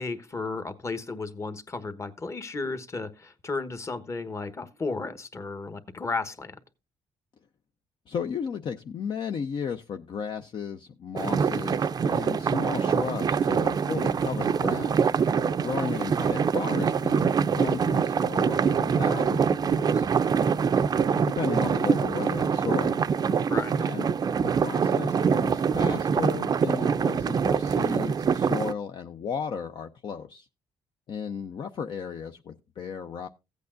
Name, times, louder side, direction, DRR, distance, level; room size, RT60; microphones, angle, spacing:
voice 1, 0.0-6.6 21.1-21.3 23.5-23.7, left 3 dB, 30° left, 1.1 m, -34 dB
voice 2, 8.1-15.0 15.6-20.1 21.4-23.0 23.8-24.1 24.4-30.5 31.1-33.3, left 6 dB, 50° left, 0.6 m, -34 dB
sound 1, 11.2-28.7, right 6 dB, 40° right, 0.5 m, -24 dB
15.5 x 8.4 x 2.5 m
cardioid pair, 90°, 10 cm